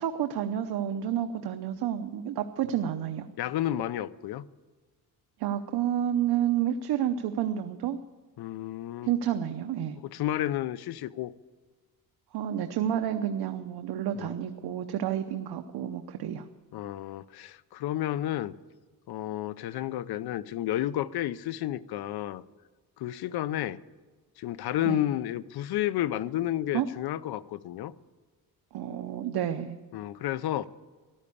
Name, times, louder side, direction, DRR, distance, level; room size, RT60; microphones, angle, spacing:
voice 1, 0.0-3.3 5.4-8.0 9.0-10.0 12.3-16.5 24.9-25.0 26.7-26.9 28.7-29.8, right 10 dB, 90° right, 0.9 m, -30 dB
voice 2, 3.4-4.4 8.4-9.1 10.0-11.3 14.2-14.3 16.7-18.5 19.1-22.4 23.0-23.8 24.4-27.9 29.9-30.7, left 12 dB, 85° left, 0.7 m, -31 dB
14.0 x 12.0 x 8.5 m
cardioid pair, 120°, 37 cm